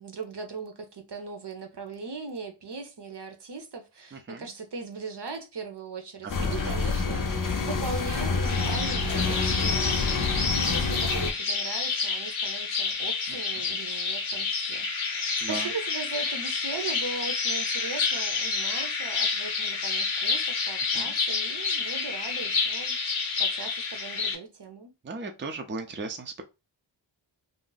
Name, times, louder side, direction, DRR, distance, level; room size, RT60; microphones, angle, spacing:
voice 1, 0.0-10.4 10.7-24.9, right 4 dB, 60° right, 0.8 m, -39 dB
voice 2, 4.1-4.4 6.4-6.8 7.1-7.2 15.4-15.7 20.9-21.1 25.0-26.4, right 3 dB, 25° right, 0.5 m, -36 dB
sound 1, 6.3-11.3, left 4 dB, 45° left, 0.5 m, -27 dB
sound 2, 8.5-24.3, left 4 dB, 85° left, 0.7 m, -29 dB
2.5 x 2.0 x 3.8 m
wide cardioid pair, 55°, 47 cm